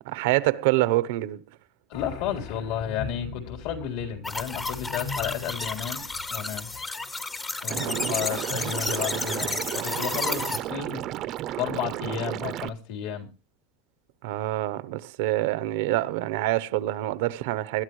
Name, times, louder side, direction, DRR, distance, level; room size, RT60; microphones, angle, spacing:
voice 1, 0.0-1.4 7.8-8.2 14.2-17.8, right 17 dB, 75° right, 0.9 m, -26 dB
sound 1, 1.9-7.2, left 5 dB, 85° left, 5.3 m, -40 dB
voice 2, 1.9-6.7 7.6-11.0 11.6-13.3, left 9 dB, 65° left, 3.8 m, -32 dB
sound 2, 4.2-10.6, left 3 dB, 15° left, 0.9 m, -32 dB
Liquid, 7.7-12.7, right 13 dB, 40° right, 0.7 m, -33 dB
20.5 x 12.5 x 3.2 m
cardioid pair, 170°, 0 cm